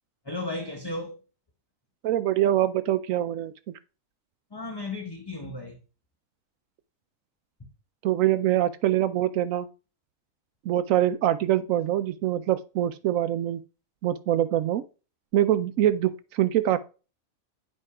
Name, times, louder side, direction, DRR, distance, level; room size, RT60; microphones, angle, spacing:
voice 1, 0.2-1.2 4.5-5.8, left 2 dB, 20° left, 1.0 m, -34 dB
voice 2, 2.0-3.5 8.0-9.7 10.7-13.6 14.0-14.8 15.3-16.8, right 12 dB, 85° right, 1.0 m, -24 dB
9.9 x 5.2 x 4.8 m
omnidirectional pair, 1.4 m